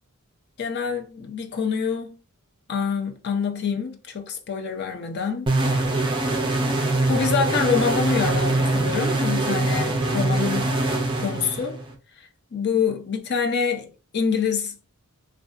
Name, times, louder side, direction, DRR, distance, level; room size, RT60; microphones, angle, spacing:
voice 1, 0.6-2.2 2.7-5.5 7.1-10.7 11.2-11.8 12.2-14.8, left 6 dB, 50° left, 0.4 m, -26 dB
sound 1, 5.5-11.9, right 2 dB, 20° right, 0.3 m, -23 dB
2.6 x 2.2 x 2.3 m
head